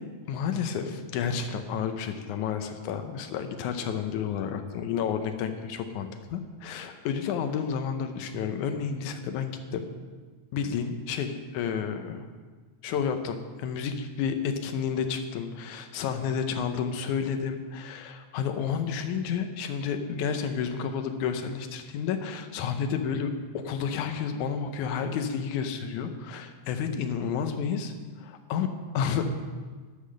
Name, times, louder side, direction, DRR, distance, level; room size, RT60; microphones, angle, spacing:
voice 1, 0.3-9.9 10.5-12.2 12.8-28.7 28.9-29.3, left 7 dB, 85° left, 7 dB, 2.2 m, -31 dB
12.0 x 5.8 x 6.4 m, 1.5 s
omnidirectional pair, 3.4 m